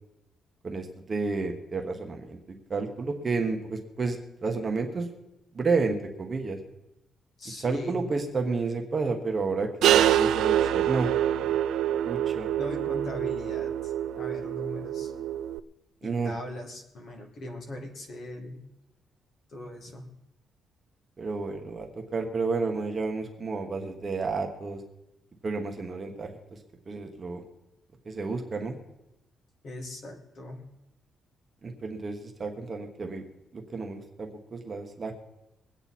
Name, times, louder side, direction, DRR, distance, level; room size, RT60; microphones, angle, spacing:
voice 1, 0.6-5.1 5.5-6.6 7.6-9.7 10.0-11.1 11.4-11.5 12.0-12.5 16.0-16.3 21.2-24.8 25.4-26.6 26.9-27.4 28.0-28.8 31.6-33.2 33.5-35.1, right 4 dB, 25° right, 3 dB, 1.2 m, -31 dB
voice 2, 7.4-8.0 12.6-15.1 16.0-18.7 19.5-20.1 29.6-30.7, left 1 dB, 45° left, 3 dB, 2.2 m, -40 dB
sound 1, 9.8-15.6, right 11 dB, 85° right, 0.4 m, -26 dB
22.0 x 8.9 x 4.2 m, 0.90 s
cardioid pair, 170°, 0 cm